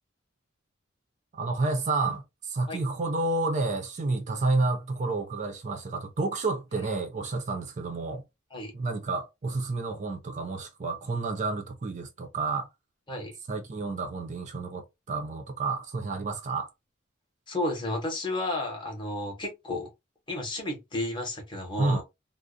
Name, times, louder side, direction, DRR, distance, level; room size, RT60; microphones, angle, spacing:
voice 1, 1.3-8.2 8.7-12.7 13.5-16.7 21.8-22.0, right 3 dB, 35° right, 0.4 m, -30 dB
voice 2, 17.5-19.9 20.3-22.0, left 1 dB, 25° left, 0.8 m, -32 dB
2.4 x 2.0 x 2.5 m
head